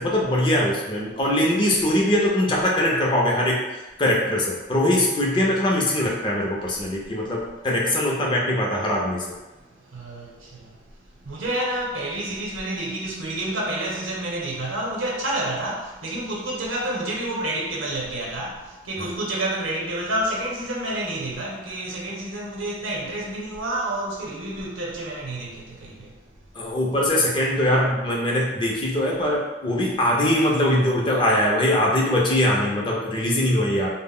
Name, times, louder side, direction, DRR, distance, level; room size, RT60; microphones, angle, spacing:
voice 1, 0.0-3.6 4.0-9.2 19.0-19.1 26.6-33.9, left 1 dB, 25° left, 0.4 m, -22 dB
voice 2, 9.5-26.2, right 1 dB, 80° right, 0.7 m, -29 dB
2.1 x 2.0 x 3.6 m
head